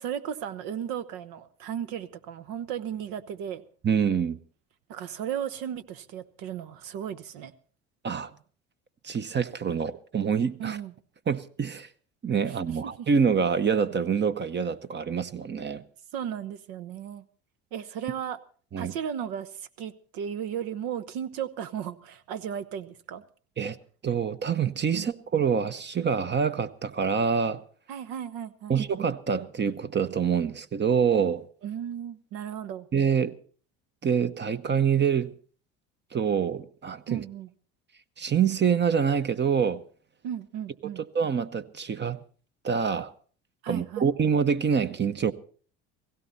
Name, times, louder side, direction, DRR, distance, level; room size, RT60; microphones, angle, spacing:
voice 1, 0.0-3.6 4.9-7.5 10.6-10.9 12.5-13.1 16.1-17.2 17.7-18.4 18.8-23.2 24.9-25.1 27.9-28.8 31.6-32.9 37.1-37.5 40.2-41.0 43.6-44.1, right 9 dB, 70° right, 1.1 m, -35 dB
voice 2, 3.8-4.4 8.0-8.3 9.0-10.8 11.3-11.9 12.2-15.8 18.7-18.9 23.6-23.8 24.0-27.6 28.7-31.5 32.9-33.4 34.0-35.3 36.1-37.2 38.2-39.8 41.0-42.2 42.6-43.1 43.7-45.3, right 7 dB, 30° right, 0.8 m, -26 dB
16.5 x 16.5 x 4.1 m
hypercardioid pair, 70°, 36 cm